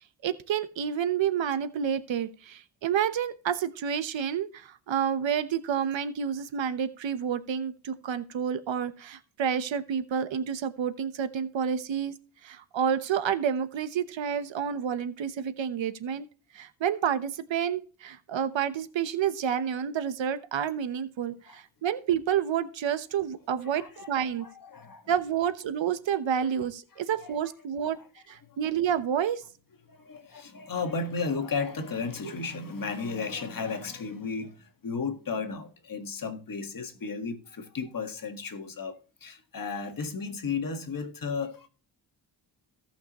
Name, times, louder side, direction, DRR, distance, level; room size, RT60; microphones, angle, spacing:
voice 1, 0.2-12.1 12.4-16.3 16.5-24.5 25.1-28.0 28.3-29.4 32.2-32.3, right 8 dB, 70° right, 1.1 m, -29 dB
voice 2, 23.7-24.1 24.4-25.1 27.2-27.3 27.8-27.9 28.5-28.6 29.9-41.7, left 4 dB, 45° left, 1.7 m, -34 dB
17.0 x 5.9 x 3.0 m
cardioid pair, 105°, 46 cm